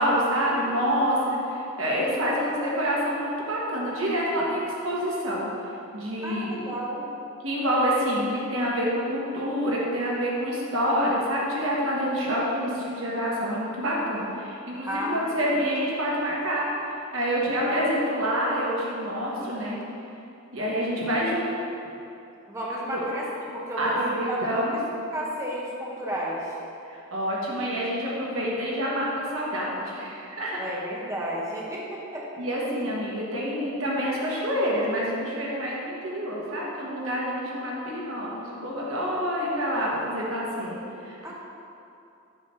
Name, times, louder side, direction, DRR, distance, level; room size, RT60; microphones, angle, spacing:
voice 1, 0.0-5.5 5.9-6.6 7.4-19.8 20.5-21.5 22.7-23.0 23.8-24.8 26.8-30.7 32.4-41.3, equal, 70° right, -5 dB, 1.3 m, -27 dB
voice 2, 6.2-7.1 14.9-15.5 17.6-17.8 22.5-24.0 24.3-24.6 25.1-26.6 30.6-32.3 41.2-41.3, equal, 15° right, -4 dB, 0.9 m, -32 dB
7.2 x 3.4 x 5.5 m, 2.8 s
head